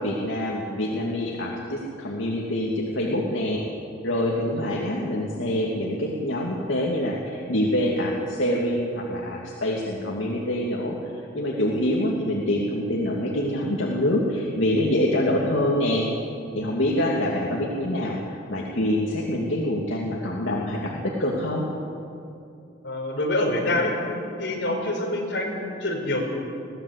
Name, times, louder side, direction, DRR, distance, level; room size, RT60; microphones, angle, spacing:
voice 1, 0.0-3.6 4.0-11.0 11.3-16.1 16.5-21.7, left 1 dB, 80° left, -2 dB, 2.4 m, -25 dB
voice 2, 22.8-23.9 24.4-26.2, left 1 dB, 65° left, 0 dB, 4.6 m, -26 dB
21.5 x 16.5 x 8.1 m, 2.6 s
head